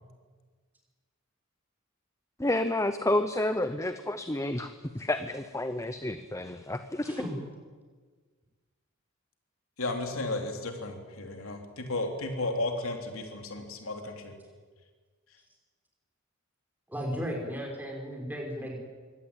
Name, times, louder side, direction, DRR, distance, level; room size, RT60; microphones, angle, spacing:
voice 1, 2.4-7.2, left 1 dB, 15° left, 10 dB, 0.8 m, -30 dB
voice 2, 7.0-7.4 16.9-18.8, equal, 10° right, 0 dB, 5.5 m, -35 dB
voice 3, 9.8-14.3, left 2 dB, 75° left, 4 dB, 3.3 m, -34 dB
24.5 x 17.0 x 9.0 m, 1.5 s
head